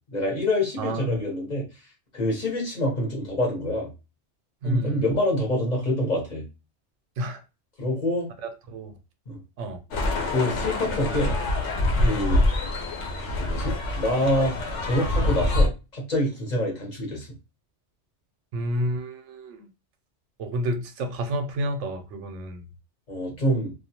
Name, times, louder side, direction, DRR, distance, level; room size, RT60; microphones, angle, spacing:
voice 1, 0.1-1.7 2.1-3.9 4.6-6.4 7.8-8.3 9.3-9.4 10.3-11.3 12.0-12.4 13.4-14.5 14.8-17.3 23.1-23.7, left 1 dB, 40° left, 0.9 m, -26 dB
voice 2, 0.8-1.2 4.6-5.0 7.2-7.4 8.4-8.9 9.6-9.8 12.0-12.2 18.5-19.7 20.4-22.6, equal, 85° right, 1.0 m, -30 dB
sound 1, 9.9-15.7, left 2 dB, 75° left, 1.0 m, -25 dB
2.4 x 2.2 x 2.8 m
omnidirectional pair, 1.2 m